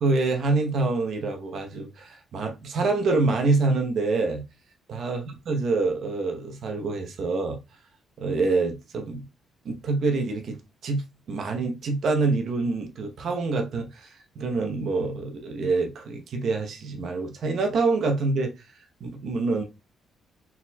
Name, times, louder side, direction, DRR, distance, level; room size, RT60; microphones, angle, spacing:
voice 1, 0.0-4.4 4.9-7.6 8.2-9.2 9.6-11.0 11.3-18.5 19.0-19.6, right 3 dB, 60° right, 0.9 m, -26 dB
4.2 x 4.1 x 2.2 m
cardioid pair, 90°, 0 cm